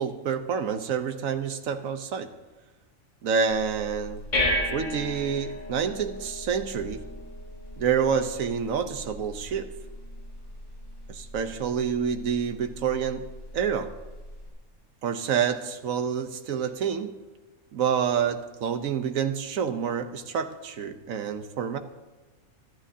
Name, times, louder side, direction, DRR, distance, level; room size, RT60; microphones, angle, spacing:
voice 1, 0.0-2.3 3.2-4.2 4.7-7.0 7.8-9.7 11.1-13.3 13.5-13.9 15.0-17.2 17.7-21.8, right 7 dB, 70° right, 8 dB, 1.3 m, -28 dB
sound 1, 3.5-14.5, left 1 dB, 75° left, 4.6 m, -35 dB
24.0 x 11.5 x 2.8 m, 1.2 s
omnidirectional pair, 1.5 m